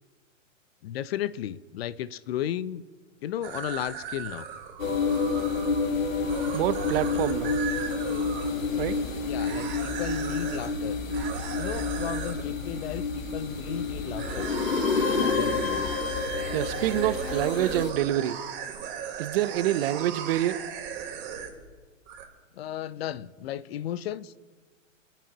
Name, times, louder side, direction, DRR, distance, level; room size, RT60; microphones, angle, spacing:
voice 1, 0.8-2.8 3.2-4.5 9.3-11.0 11.6-14.5 15.2-15.9 22.5-24.4, left 11 dB, 50° left, 0.6 m, -34 dB
sound 1, 3.4-8.5 9.4-10.7 11.1-12.4 14.2-21.7 22.1-22.2, right 8 dB, 30° right, 2.3 m, -37 dB
sound 2, 4.8-17.9, left 4 dB, 85° left, 1.5 m, -29 dB
voice 2, 6.5-7.5 8.8-9.0 16.5-18.4 19.2-20.6, right 13 dB, 50° right, 0.8 m, -26 dB
26.0 x 9.1 x 3.0 m
hypercardioid pair, 120°, 39 cm